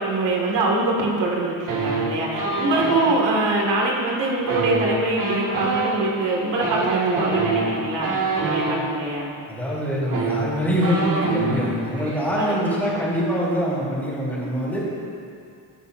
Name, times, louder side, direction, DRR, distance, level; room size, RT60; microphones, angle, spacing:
voice 1, 0.0-9.3 12.4-12.9, right 2 dB, 80° right, -2 dB, 2.3 m, -24 dB
sound 1, 1.7-3.1 4.4-8.8 9.7-9.8 10.0-11.7 12.0-12.2 12.5-13.0, right 3 dB, 50° right, 2.1 m, -25 dB
voice 2, 9.5-14.8, equal, 5° left, -8 dB, 3.3 m, -24 dB
19.5 x 11.0 x 2.7 m, 2.4 s
cardioid pair, 175°, 42 cm